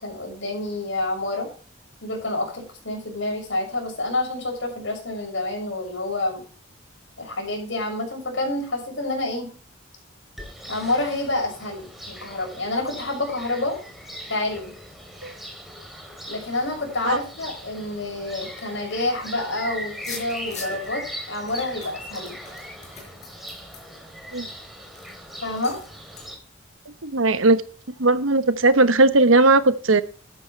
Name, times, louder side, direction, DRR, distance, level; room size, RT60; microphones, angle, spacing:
voice 1, 0.0-1.5 2.0-6.4 7.2-9.5 10.7-13.8 14.3-14.7 16.3-22.3 25.4-25.8, left 2 dB, 65° left, 2 dB, 6.6 m, -28 dB
sound 1, 10.4-26.4, equal, ahead, 3.2 m, -40 dB
sound 2, 19.9-20.9 21.5-24.5 24.9-25.1 25.6-25.9 26.2-26.3, left 4 dB, 35° left, 5.7 m, -41 dB
voice 2, 27.0-27.6 28.0-30.0, right 2 dB, 85° right, 12 dB, 1.1 m, -17 dB
13.5 x 12.0 x 3.3 m, 0.39 s
head